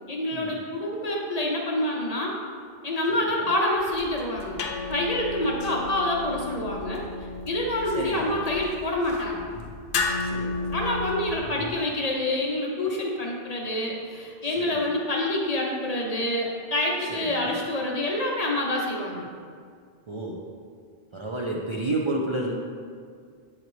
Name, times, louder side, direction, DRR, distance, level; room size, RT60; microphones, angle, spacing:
voice 1, 0.1-2.3 2.8-4.6 4.9-7.0 7.5-9.5 10.7-19.3, left 1 dB, 40° left, -2 dB, 0.8 m, -27 dB
voice 2, 3.1-3.5 7.9-8.3 10.2-10.8 14.4-14.9 17.1-17.6 20.1-20.4 21.1-22.5, right 2 dB, 40° right, -3 dB, 0.4 m, -31 dB
sound 1, 3.8-11.8, left 3 dB, 75° left, 0.8 m, -33 dB
8.2 x 4.0 x 3.1 m, 2.1 s
omnidirectional pair, 1.1 m